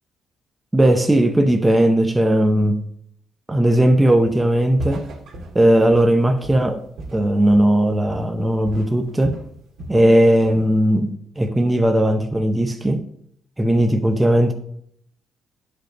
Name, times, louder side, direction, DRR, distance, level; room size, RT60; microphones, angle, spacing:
voice 1, 0.7-2.8 3.5-5.1 5.5-6.8 7.1-9.4 9.9-13.0 13.6-14.5, right 1 dB, 15° right, 0.7 m, -17 dB
Walk footsteps, 4.3-4.5 4.8-7.8 8.1-8.4 8.7-10.0 10.4-10.8, right 1 dB, 75° right, 2.0 m, -36 dB
10.0 x 5.3 x 3.9 m
cardioid pair, 90°, 0 cm